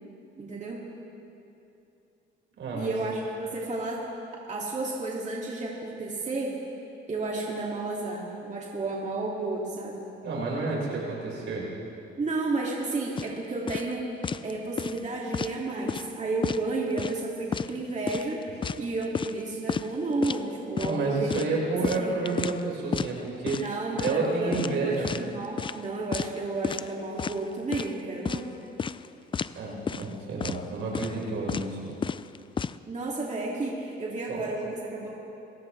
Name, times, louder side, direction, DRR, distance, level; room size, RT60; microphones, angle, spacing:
voice 1, 0.4-0.8 2.7-4.0 4.5-6.6 7.1-10.1 12.2-14.1 14.4-18.4 18.8-21.4 21.7-22.3 23.6-28.6 32.9-35.1, right 2 dB, 35° right, -4 dB, 2.4 m, -32 dB
voice 2, 2.6-2.9 10.2-11.7 20.8-23.6 24.0-25.1 29.6-32.0 34.3-34.4, right 3 dB, 75° right, -3 dB, 5.1 m, -30 dB
sound 1, 13.2-13.3 13.7-13.9 14.2-14.5 14.8-15.6 15.9-16.1 16.4-17.2 17.5-17.7 18.1-19.4 19.7-19.9 20.2-20.4 20.8-21.0 21.3-22.6 22.9-23.1 23.5-23.7 24.0-24.3 24.5-25.3 25.6-25.8 26.1-26.4 26.6-26.9 27.2-27.9 28.3-28.4 28.8-29.1 29.3-29.6 29.9-30.1 30.4-30.6 31.0-31.2 31.5-31.7 32.0-32.8, left 6 dB, 25° left, 0.4 m, -31 dB
28.5 x 15.5 x 3.3 m, 2.8 s
cardioid pair, 90°, 20 cm